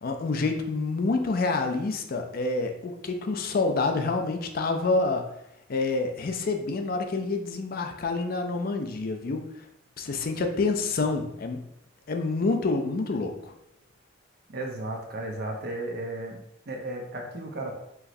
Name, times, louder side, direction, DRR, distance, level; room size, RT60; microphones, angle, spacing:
voice 1, 0.0-5.3 5.7-9.4 10.0-11.6 12.1-13.5, left 3 dB, 50° left, 5 dB, 0.4 m, -27 dB
voice 2, 14.5-16.4 16.7-17.7, right 2 dB, 55° right, 1 dB, 0.8 m, -34 dB
4.7 x 3.1 x 2.6 m, 0.79 s
head